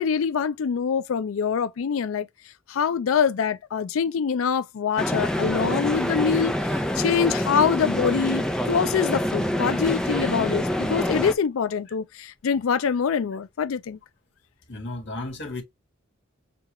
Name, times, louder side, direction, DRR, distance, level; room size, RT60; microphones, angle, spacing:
voice 1, 0.0-2.3 2.7-14.0, left 6 dB, 85° left, 0.4 m, -25 dB
sound 1, 5.0-11.3, equal, 5° left, 0.5 m, -26 dB
voice 2, 14.7-15.6, left 2 dB, 60° left, 1.6 m, -34 dB
6.7 x 2.4 x 2.9 m
head